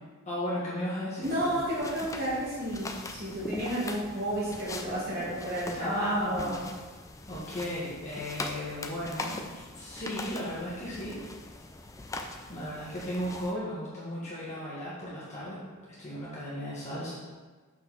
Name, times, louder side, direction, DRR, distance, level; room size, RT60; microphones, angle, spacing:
voice 1, 0.2-1.6 5.8-6.6 7.3-11.2 12.5-15.6 15.9-17.1, equal, 30° left, -9 dB, 1.5 m, -35 dB
sound 1, 1.2-13.5, left 2 dB, 15° left, 0.3 m, -42 dB
voice 2, 1.2-6.6, right 1 dB, 45° right, -7 dB, 2.1 m, -32 dB
6.3 x 5.4 x 4.1 m, 1.4 s
head